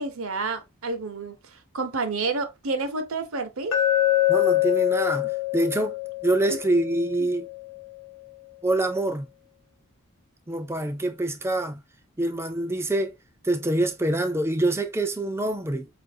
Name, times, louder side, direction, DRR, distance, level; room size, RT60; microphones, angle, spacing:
voice 1, 0.0-1.3 1.7-3.8 7.2-7.3, right 3 dB, 70° right, 0.8 m, -29 dB
Glass, 3.7-7.8, left 14 dB, 60° left, 0.8 m, -25 dB
voice 2, 4.3-6.0 6.2-7.5 8.6-9.3 10.5-11.8 12.2-13.2 13.4-15.9, right 1 dB, 10° right, 0.4 m, -25 dB
4.7 x 2.5 x 2.6 m
head